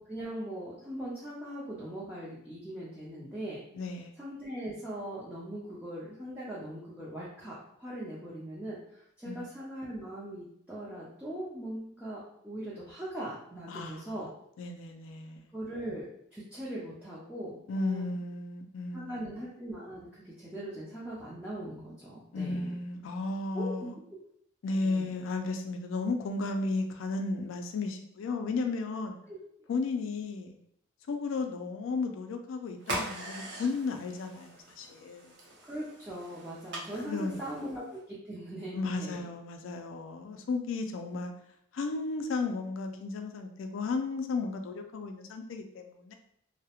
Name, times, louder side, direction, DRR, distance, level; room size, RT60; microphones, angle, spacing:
voice 1, 0.0-3.6 4.2-14.3 15.5-18.2 18.9-22.7 23.5-23.9 24.8-25.2 29.3-29.4 35.6-39.2, right 1 dB, 5° right, -8 dB, 0.4 m, -40 dB
voice 2, 3.7-4.1 9.3-9.5 13.7-14.2 14.6-15.5 17.7-19.3 22.3-24.0 24.6-29.2 29.7-30.5 31.1-35.3 37.1-37.6 38.7-41.3 41.7-46.1, left 3 dB, 90° left, 5 dB, 0.3 m, -34 dB
sound 1, 32.8-38.0, right 1 dB, 60° right, 0.6 m, -41 dB
2.3 x 2.0 x 2.8 m, 0.73 s
head